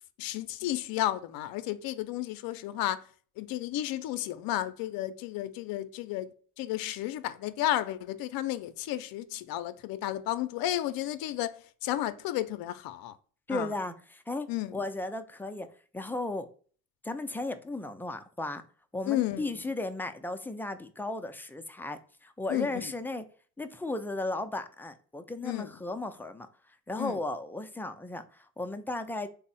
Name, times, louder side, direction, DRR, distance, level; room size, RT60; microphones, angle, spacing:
voice 1, 0.2-3.0 3.4-11.5 11.8-13.2 13.5-13.7 14.5-14.8 19.1-19.6 22.5-22.9 25.4-25.7 27.0-27.2, left 14 dB, 70° left, 0.5 m, -32 dB
voice 2, 13.5-15.7 15.9-16.5 17.0-18.6 18.9-23.2 23.6-29.3, left 2 dB, 5° left, 0.3 m, -35 dB
3.5 x 2.1 x 4.0 m
supercardioid pair, 75°, 37 cm